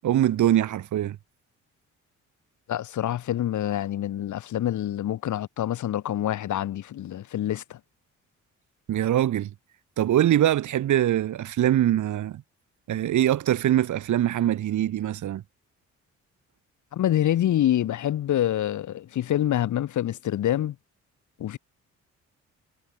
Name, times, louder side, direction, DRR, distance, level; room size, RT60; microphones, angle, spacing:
voice 1, 0.0-1.2 8.9-9.5 10.0-12.4 12.9-15.4, right 12 dB, 75° right, 7.6 m, -23 dB
voice 2, 2.7-7.8 16.9-20.7 21.4-21.6, left 12 dB, 75° left, 7.7 m, -26 dB
cardioid pair, 90°, 30 cm